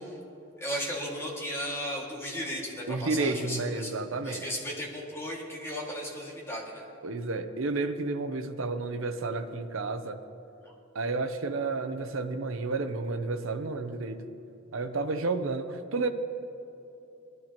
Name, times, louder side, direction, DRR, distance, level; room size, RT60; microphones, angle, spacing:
voice 1, 0.6-3.9 4.2-6.8 10.6-10.7, equal, 15° left, -3 dB, 2.0 m, -35 dB
voice 2, 2.9-4.4 7.0-10.2 10.9-14.3 14.7-16.1, right 3 dB, 70° right, 8 dB, 0.7 m, -31 dB
19.0 x 11.0 x 2.9 m, 3.0 s
head